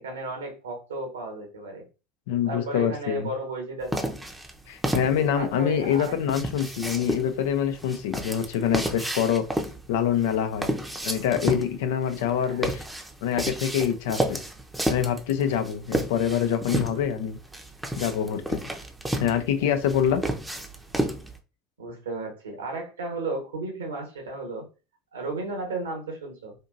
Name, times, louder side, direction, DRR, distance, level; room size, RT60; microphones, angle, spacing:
voice 1, 0.0-1.8 2.5-4.1 4.9-6.2 12.3-12.6 21.8-24.7 25.1-26.5, right 3 dB, 80° right, 2 dB, 1.3 m, -34 dB
voice 2, 2.3-3.3 4.7-9.4 9.9-10.7 11.0-12.8 13.2-14.4 14.9-17.4 18.0-18.6 19.2-20.2, left 9 dB, 65° left, 9 dB, 0.6 m, -25 dB
sound 1, 3.9-21.4, right 1 dB, 5° right, 0.7 m, -31 dB
4.3 x 2.7 x 2.6 m, 0.30 s
figure-of-eight pair, 70°, 0 cm